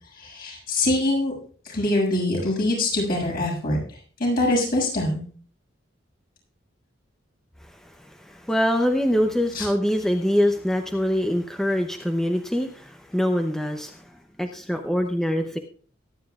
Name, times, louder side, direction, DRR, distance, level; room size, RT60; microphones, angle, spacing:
voice 1, 0.2-1.3 1.7-3.8 4.2-5.2 9.5-9.7, left 1 dB, 50° left, -2 dB, 7.0 m, -23 dB
voice 2, 8.0-14.0 14.4-15.6, equal, 5° left, 4 dB, 0.7 m, -24 dB
23.5 x 10.0 x 2.4 m, 0.43 s
head